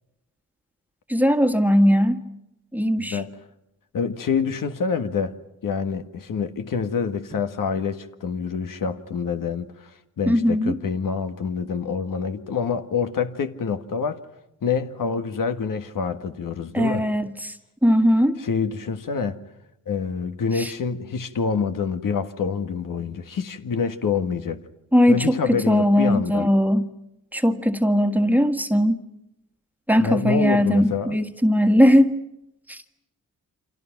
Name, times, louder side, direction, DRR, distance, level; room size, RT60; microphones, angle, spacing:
voice 1, 1.1-2.2 2.7-3.2 10.3-10.8 16.7-17.5 17.8-18.4 20.5-20.7 24.9-26.8 27.3-29.0 29.9-32.1 32.7-32.8, equal, 5° right, 1.7 m, -19 dB
voice 2, 3.0-3.3 3.9-5.3 5.6-14.2 14.6-17.0 18.4-19.4 19.9-24.6 25.1-26.5 30.0-31.2, left 6 dB, 75° left, 1.7 m, -26 dB
29.5 x 26.0 x 6.0 m
cardioid pair, 95°, 33 cm